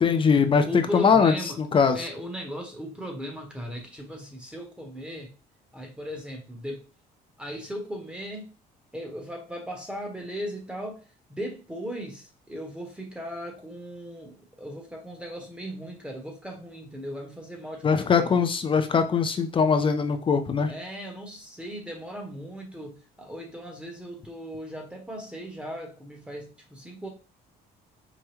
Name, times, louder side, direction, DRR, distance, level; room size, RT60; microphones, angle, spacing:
voice 1, 0.0-2.1 17.8-20.7, left 6 dB, 30° left, 8 dB, 0.5 m, -22 dB
voice 2, 0.6-1.6 1.9-5.3 5.7-6.8 7.4-8.5 8.9-11.0 11.3-18.4 20.7-27.1, equal, 5° right, 2 dB, 1.0 m, -37 dB
4.8 x 2.1 x 3.0 m, 0.34 s
cardioid pair, 110°, 17 cm